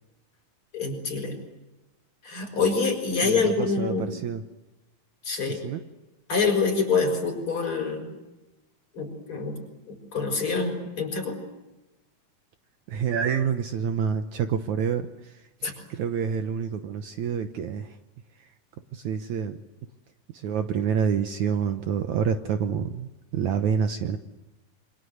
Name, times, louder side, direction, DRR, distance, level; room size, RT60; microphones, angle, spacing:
voice 1, 0.7-1.4 2.2-4.1 5.2-5.6 6.3-8.1 8.9-9.6 9.9-11.4 15.6-15.7, left 4 dB, 35° left, 4 dB, 6.6 m, -26 dB
voice 2, 3.2-4.4 5.5-5.8 12.9-15.1 15.6-17.9 18.9-19.6 20.4-24.2, right 7 dB, 65° right, 8 dB, 2.2 m, -27 dB
27.0 x 25.5 x 8.0 m, 1.0 s
omnidirectional pair, 4.0 m